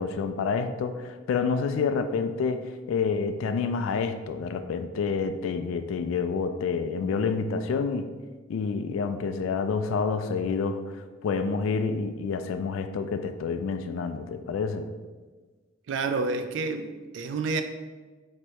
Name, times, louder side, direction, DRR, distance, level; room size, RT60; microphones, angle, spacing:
voice 1, 0.0-8.1 8.5-14.9, left 5 dB, 85° left, 9 dB, 0.3 m, -28 dB
voice 2, 15.9-17.6, right 4 dB, 70° right, 8 dB, 0.4 m, -29 dB
3.2 x 2.9 x 4.6 m, 1.3 s
head